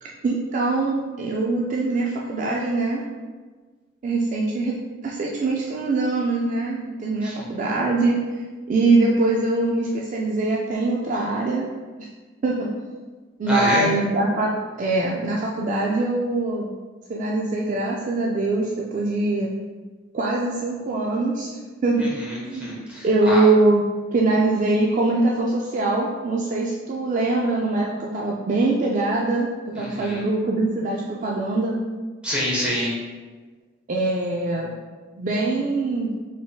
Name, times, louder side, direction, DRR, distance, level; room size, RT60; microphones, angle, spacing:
voice 1, 0.0-3.0 4.0-4.7 5.0-8.2 8.7-11.6 12.0-12.1 12.4-12.7 13.4-14.5 14.8-16.7 17.1-19.5 20.1-21.5 21.8-22.1 22.4-22.7 23.0-23.8 24.1-29.5 29.7-31.7 33.9-34.7 35.2-36.1, right 2 dB, 40° right, -3 dB, 0.3 m, -23 dB
voice 2, 13.5-13.9 22.0-23.4 29.8-30.2 32.2-32.9, equal, 5° right, -7 dB, 1.0 m, -27 dB
3.8 x 3.5 x 2.2 m, 1.4 s
head